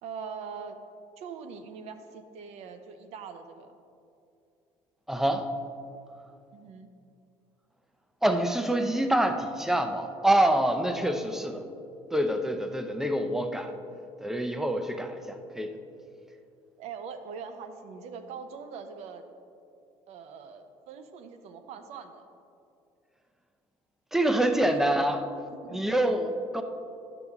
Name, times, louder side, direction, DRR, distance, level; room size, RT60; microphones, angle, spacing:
voice 1, 0.0-0.8 1.2-3.8 6.5-6.9 13.6-14.0 16.8-19.2 20.1-22.2 24.5-24.7 25.5-25.9 26.2-26.3, right 6 dB, 70° right, 8 dB, 0.7 m, -42 dB
voice 2, 5.1-5.5 8.2-11.6 12.1-13.7 14.2-15.8 24.1-25.3 25.7-26.6, right 1 dB, 5° right, 7 dB, 0.5 m, -26 dB
9.9 x 7.0 x 3.5 m, 2.6 s
cardioid pair, 130°, 12 cm